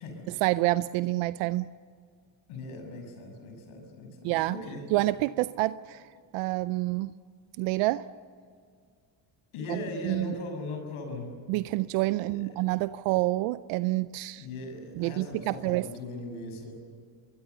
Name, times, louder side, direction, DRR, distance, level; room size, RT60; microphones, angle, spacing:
voice 1, 0.4-1.7 4.2-4.6 4.9-6.0 6.3-7.1 7.6-8.1 9.7-9.8 10.0-10.3 11.5-14.4 15.0-15.8, right 19 dB, 85° right, 15 dB, 0.6 m, -27 dB
voice 2, 2.5-4.8 9.5-11.3 12.2-12.5 14.4-16.7, left 2 dB, 80° left, 4 dB, 6.6 m, -39 dB
24.5 x 22.5 x 6.9 m, 2.1 s
supercardioid pair, 70°, 50 cm